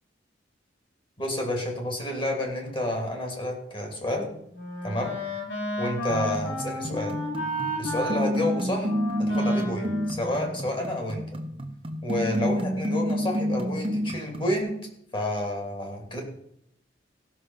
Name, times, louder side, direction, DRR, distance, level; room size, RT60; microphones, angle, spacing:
voice 1, 1.2-4.3 4.8-5.1 5.8-7.2 7.8-8.9 9.2-11.2 12.0-14.8 15.1-16.2, left 1 dB, 25° left, 1 dB, 2.7 m, -29 dB
Wind instrument woodwind instrument, 4.0-11.2, equal, 75° left, 4.9 m, -34 dB
sound 1, 6.1-14.6, equal, 30° right, 1.1 m, -30 dB
16.0 x 6.5 x 5.6 m, 0.76 s
head